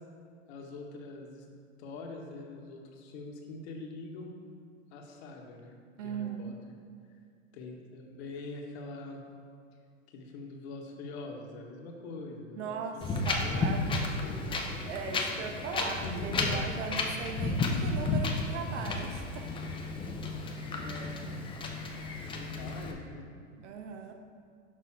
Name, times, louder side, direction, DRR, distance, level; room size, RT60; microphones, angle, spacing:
voice 1, 0.5-1.4 1.8-4.3 4.9-5.8 6.0-6.5 7.5-9.2 10.1-14.5 15.5-16.6 20.6-21.4 21.8-21.9 22.2-23.3, left 3 dB, 55° left, 1 dB, 1.2 m, -44 dB
voice 2, 6.0-6.6 12.5-13.8 14.8-19.7 23.6-24.1, right 5 dB, 65° right, 4 dB, 1.0 m, -39 dB
Wind, 13.0-22.9, left 3 dB, 15° left, 0.5 m, -33 dB
6.3 x 5.2 x 4.5 m, 2.2 s
hypercardioid pair, 115°, 39 cm